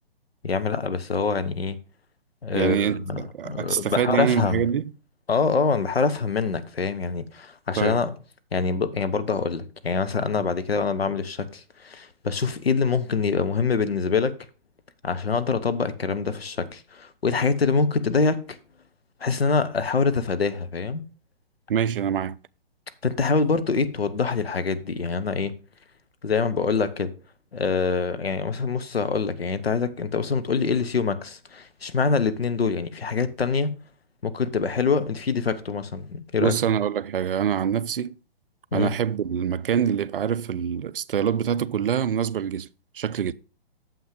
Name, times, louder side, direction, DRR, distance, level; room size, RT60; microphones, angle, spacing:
voice 1, 0.4-1.8 2.4-4.7 5.3-8.1 8.5-14.3 15.0-18.6 19.2-21.0 23.0-25.5 26.2-27.1 27.5-33.7 34.2-36.5 38.7-38.9, left 5 dB, 80° left, 1.0 m, -25 dB
voice 2, 2.5-4.9 7.8-8.0 10.4-10.5 21.7-22.4 36.4-38.1 38.7-42.7 42.9-43.3, right 8 dB, 65° right, 0.5 m, -25 dB
7.2 x 5.9 x 5.0 m
figure-of-eight pair, 130°, 30 cm